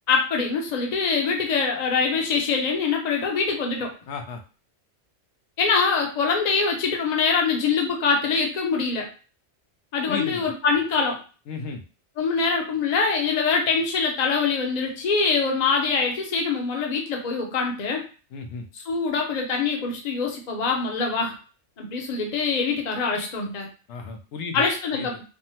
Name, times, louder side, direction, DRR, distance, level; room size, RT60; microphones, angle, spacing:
voice 1, 0.1-3.9 5.6-9.1 9.9-11.2 12.2-18.0 18.7-21.3 21.8-23.7 24.5-25.1, left 5 dB, 45° left, 1 dB, 0.7 m, -24 dB
voice 2, 4.1-4.4 10.1-10.5 11.5-11.8 18.3-18.6 23.9-24.6 24.9-25.1, left 4 dB, 85° left, 4 dB, 0.9 m, -33 dB
3.5 x 2.0 x 2.8 m, 0.36 s
omnidirectional pair, 1.2 m